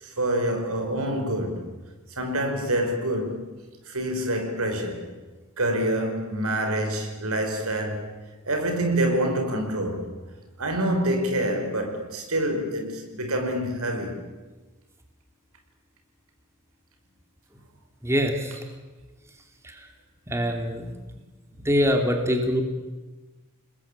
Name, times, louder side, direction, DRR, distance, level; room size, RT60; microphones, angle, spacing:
voice 1, 0.0-1.7 2.2-3.4 3.9-5.1 5.6-8.1 8.5-10.1 10.6-14.2, right 1 dB, 90° right, 5.7 m, -26 dB
voice 2, 18.0-18.6 19.6-19.9 20.3-20.9 21.6-22.6, equal, 10° right, 3.0 m, -24 dB
29.5 x 20.0 x 8.8 m
head